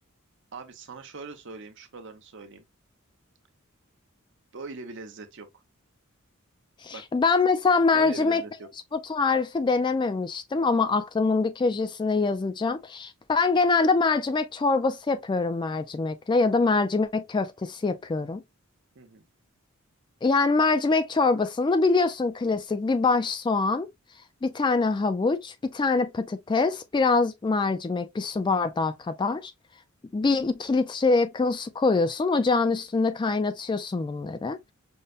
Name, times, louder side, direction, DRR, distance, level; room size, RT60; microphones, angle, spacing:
voice 1, 0.5-2.6 4.5-5.6 6.9-7.0 7.9-8.7 18.9-19.2, right 3 dB, 60° right, 0.7 m, -41 dB
voice 2, 6.8-8.4 8.9-18.4 20.2-23.9 24.4-29.5 30.1-34.6, left 3 dB, 20° left, 0.3 m, -24 dB
5.3 x 2.1 x 2.3 m
head